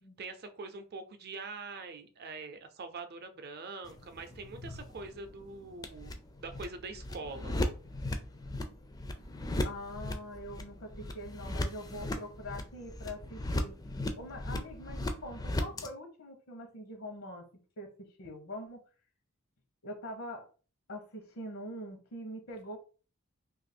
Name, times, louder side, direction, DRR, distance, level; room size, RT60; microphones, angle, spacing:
voice 1, 0.2-7.6, right 3 dB, 50° right, 0.6 m, -44 dB
sound 1, 3.8-15.9, left 1 dB, 20° left, 0.4 m, -38 dB
voice 2, 9.6-13.7 14.2-17.5 17.8-18.8 19.8-20.5 20.9-22.8, equal, 75° left, 0.8 m, -43 dB
2.8 x 2.5 x 4.2 m
head